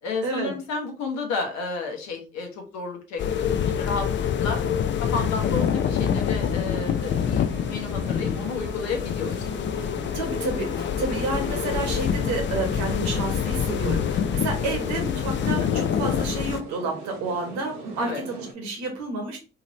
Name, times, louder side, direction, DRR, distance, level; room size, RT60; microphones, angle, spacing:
voice 1, 0.0-4.1 4.4-4.6 5.0-9.3 14.6-14.7 18.0-18.2, left 4 dB, 65° left, 3 dB, 1.0 m, -32 dB
sound 1, 3.2-16.6, left 8 dB, 40° left, 0.4 m, -26 dB
sound 2, 5.3-18.5, right 4 dB, 85° right, 0.7 m, -41 dB
voice 2, 10.1-19.4, right 3 dB, 70° right, 2 dB, 1.1 m, -30 dB
2.8 x 2.8 x 3.0 m, 0.34 s
hypercardioid pair, 45°, 30 cm